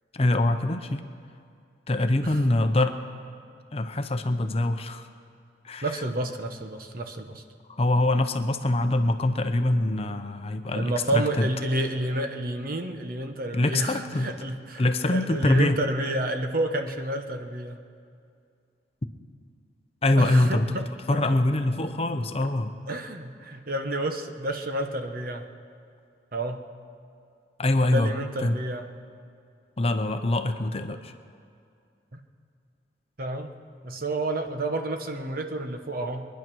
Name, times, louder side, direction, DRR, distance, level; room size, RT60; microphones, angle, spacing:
voice 1, 0.1-1.0 1.9-3.0 3.7-5.1 5.6-5.8 7.7-11.5 13.5-14.3 14.8-15.8 20.0-20.7 21.1-22.7 27.6-28.1 28.4-28.6 29.8-31.1, left 1 dB, 35° left, 8 dB, 0.7 m, -24 dB
voice 2, 5.8-7.4 10.7-17.8 20.2-20.8 21.1-21.3 22.9-25.5 26.3-26.6 27.9-28.9 32.1-32.2 33.2-33.6 33.8-36.3, right 1 dB, 50° right, 6 dB, 1.0 m, -30 dB
22.5 x 10.5 x 6.2 m, 2.4 s
head